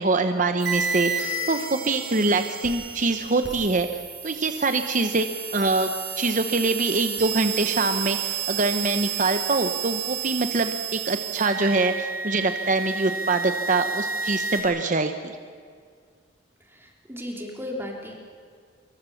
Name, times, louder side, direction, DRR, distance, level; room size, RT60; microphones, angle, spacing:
voice 1, 0.0-3.9 4.2-5.3 5.5-5.9 6.2-15.1, right 3 dB, 40° right, 7 dB, 1.0 m, -24 dB
sound 1, 0.6-14.6, right 5 dB, 60° right, 6.4 m, -31 dB
voice 2, 16.7-18.2, left 1 dB, 10° right, 0 dB, 3.5 m, -35 dB
25.5 x 23.5 x 7.2 m, 2.1 s
head